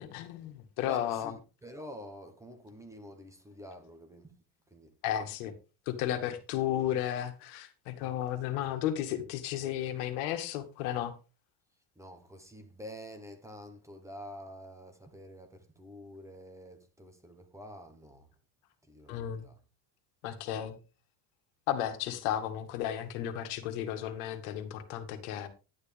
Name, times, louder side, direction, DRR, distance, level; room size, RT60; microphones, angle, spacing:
voice 1, 0.0-1.3 5.0-5.5 5.9-11.1 19.1-19.5 20.2-20.8 21.7-25.5, left 11 dB, 75° left, 2.0 m, -33 dB
voice 2, 0.9-4.3 4.7-4.9 8.7-8.8 11.9-18.3 18.8-19.6, equal, 5° right, 1.2 m, -48 dB
11.0 x 9.7 x 3.4 m
cardioid pair, 160°, 45 cm